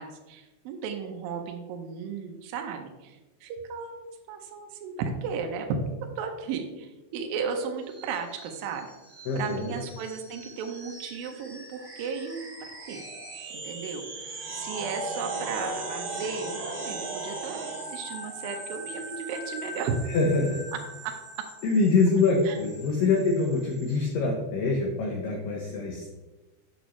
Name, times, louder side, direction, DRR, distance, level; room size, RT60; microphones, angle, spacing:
voice 1, 0.0-5.7 6.2-8.9 9.4-13.0 13.5-20.0 21.0-21.1 22.5-22.6 23.0-23.1, right 6 dB, 85° right, 4 dB, 2.0 m, -35 dB
sound 1, 7.9-24.1, right 2 dB, 45° right, 3.5 m, -39 dB
voice 2, 9.3-9.8 20.1-20.6 21.6-26.1, left 3 dB, 85° left, 1 dB, 1.9 m, -25 dB
7.9 x 7.0 x 3.1 m, 1.1 s
omnidirectional pair, 5.0 m